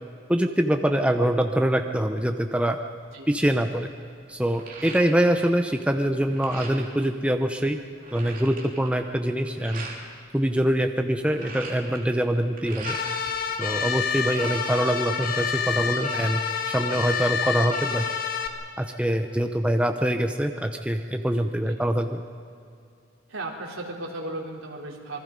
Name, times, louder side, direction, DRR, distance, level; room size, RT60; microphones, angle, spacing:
voice 1, 0.3-2.8 3.3-3.9 4.3-7.8 8.1-9.8 10.3-13.0 13.6-18.0 18.8-22.2, right 1 dB, 5° right, 5 dB, 0.8 m, -24 dB
sound 1, 4.3-5.5 5.8-7.0 7.5-7.6 7.8-10.0 11.0-13.3 13.6-14.5, right 3 dB, 40° right, 3.2 m, -41 dB
sound 2, 12.9-18.5, left 6 dB, 45° left, 1.7 m, -28 dB
voice 2, 23.3-25.2, right 2 dB, 75° right, -1 dB, 3.7 m, -35 dB
27.5 x 21.0 x 5.3 m, 2.5 s
head